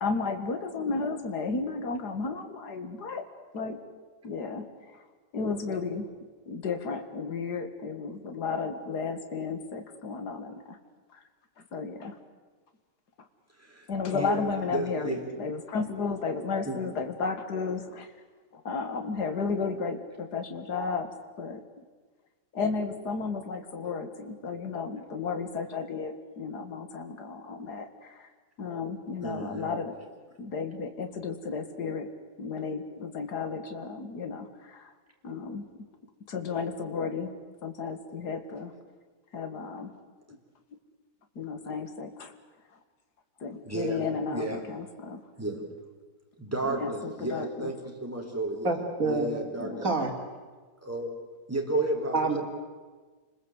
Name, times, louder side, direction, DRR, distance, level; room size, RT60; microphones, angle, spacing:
voice 1, 0.0-3.2 3.5-3.8 4.2-5.0 5.3-6.1 6.5-10.8 11.1-11.2 11.7-12.2 13.9-18.1 18.5-21.1 21.4-21.6 22.5-28.3 28.6-30.0 30.4-32.1 32.4-34.9 35.2-35.6 36.3-37.3 37.6-38.7 39.3-39.9 41.4-42.3 43.4-45.2 46.6-47.7 49.6-49.9, left 4 dB, 60° left, 7 dB, 2.5 m, -33 dB
voice 2, 14.7-15.2 16.6-16.8 29.2-29.7 43.7-44.0 44.3-44.6 45.4-45.6 46.4-47.7 48.0-48.7 49.0-49.8 50.8-51.1 51.5-52.4, right 2 dB, 5° right, 1 dB, 4.2 m, -32 dB
voice 3, 48.6-49.3 49.8-50.1 52.1-52.4, right 3 dB, 45° right, 1 dB, 4.0 m, -27 dB
29.0 x 21.0 x 8.2 m, 1.4 s
omnidirectional pair, 2.0 m